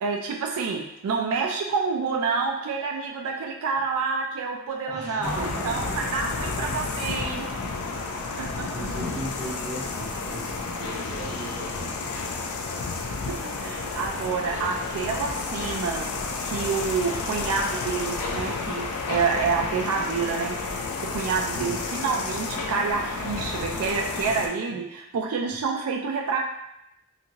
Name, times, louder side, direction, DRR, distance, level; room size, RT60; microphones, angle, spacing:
voice 1, 0.0-7.4 8.4-8.9 13.3-16.0 16.4-20.6 21.0-26.4, right 5 dB, 75° right, 1 dB, 0.3 m, -28 dB
voice 2, 4.9-6.0 6.3-6.5 8.7-12.0 21.5-21.8, right 1 dB, 15° right, -9 dB, 1.0 m, -37 dB
sound 1, 5.2-24.5, left 3 dB, 80° left, 0.4 m, -31 dB
2.8 x 2.5 x 2.6 m, 0.83 s
head